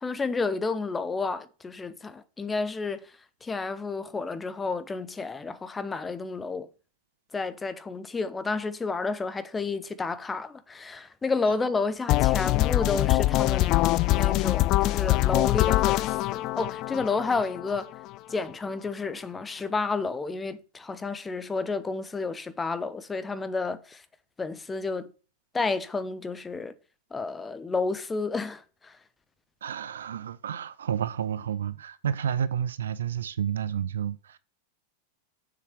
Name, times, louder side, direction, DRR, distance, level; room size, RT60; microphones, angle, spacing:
voice 1, 0.0-3.1 3.4-6.7 7.3-13.8 14.1-17.9 18.3-24.0 24.4-25.1 25.5-26.7 27.1-29.0, left 4 dB, 15° left, 0.8 m, -31 dB
sound 1, 12.1-18.1, left 17 dB, 40° left, 0.3 m, -24 dB
voice 2, 29.6-34.4, right 8 dB, 65° right, 0.5 m, -30 dB
7.1 x 6.7 x 4.7 m
figure-of-eight pair, 90°, 0 cm